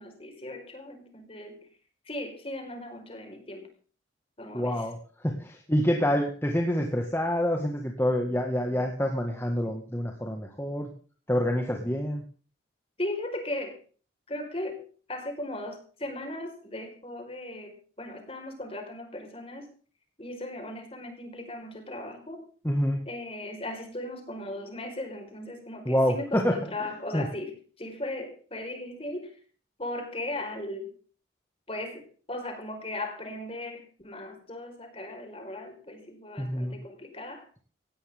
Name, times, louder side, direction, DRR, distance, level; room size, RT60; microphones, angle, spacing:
voice 1, 0.0-1.7 2.0-3.7 4.4-4.8 13.0-13.8 14.3-14.8 15.1-19.7 20.2-22.4 23.0-29.3 29.8-30.9 31.7-37.5, left 1 dB, 30° left, 4 dB, 5.0 m, -37 dB
voice 2, 4.5-5.0 5.2-10.9 11.3-12.2 22.6-23.0 25.9-27.3 36.4-36.8, equal, 15° left, 2 dB, 1.9 m, -27 dB
18.0 x 15.5 x 3.8 m, 0.41 s
head